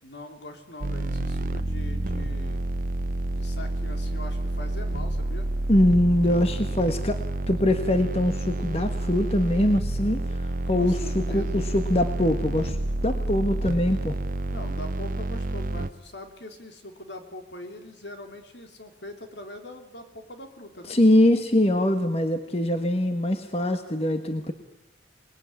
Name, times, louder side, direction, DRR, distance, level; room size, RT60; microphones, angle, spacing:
voice 1, 0.0-2.6 3.3-5.5 6.3-6.8 10.7-11.6 14.5-21.0, left 1 dB, 70° left, 5 dB, 3.3 m, -42 dB
sound 1, 0.8-15.9, right 1 dB, 45° right, 0.9 m, -29 dB
voice 2, 5.7-12.8 13.0-14.1 20.9-24.5, left 1 dB, 35° left, 7 dB, 1.5 m, -23 dB
27.0 x 20.5 x 9.8 m, 1.0 s
head